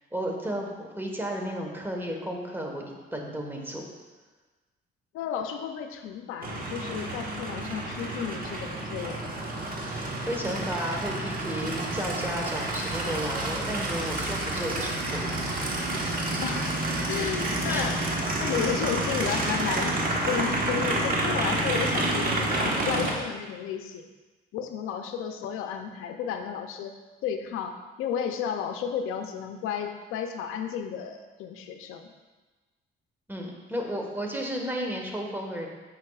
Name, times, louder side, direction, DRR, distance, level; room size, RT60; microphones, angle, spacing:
voice 1, 0.1-2.8 3.1-3.9 10.3-15.2 17.7-17.8 33.3-35.7, equal, 10° right, 0 dB, 1.3 m, -33 dB
voice 2, 5.1-9.3 16.4-16.7 17.1-18.0 18.4-24.1 24.5-27.0 27.2-32.1, left 8 dB, 85° left, 6 dB, 0.6 m, -33 dB
Aircraft, 6.4-23.1, right 1 dB, 45° right, 1.3 m, -29 dB
9.3 x 5.4 x 2.4 m, 1.2 s
cardioid pair, 85°, 21 cm